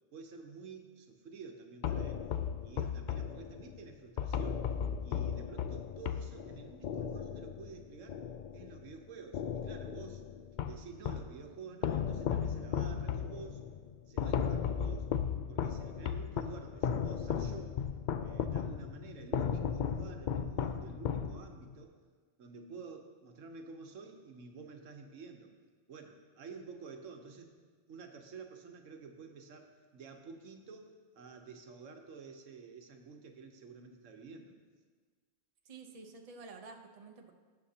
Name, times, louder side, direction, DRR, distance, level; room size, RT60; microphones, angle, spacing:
voice 1, 0.1-2.3 2.6-4.7 5.0-8.2 8.5-10.3 10.6-13.7 14.1-15.1 15.5-17.8 18.2-22.0 22.4-25.5 25.9-27.5 27.9-34.5, right 5 dB, 90° right, 4 dB, 1.3 m, -50 dB
sound 1, 1.8-9.0 9.3-11.4 11.8-21.7, left 8 dB, 65° left, 0.4 m, -36 dB
voice 2, 35.7-37.3, right 4 dB, 35° right, 3 dB, 0.7 m, -50 dB
17.5 x 7.4 x 2.8 m, 1.5 s
omnidirectional pair, 1.3 m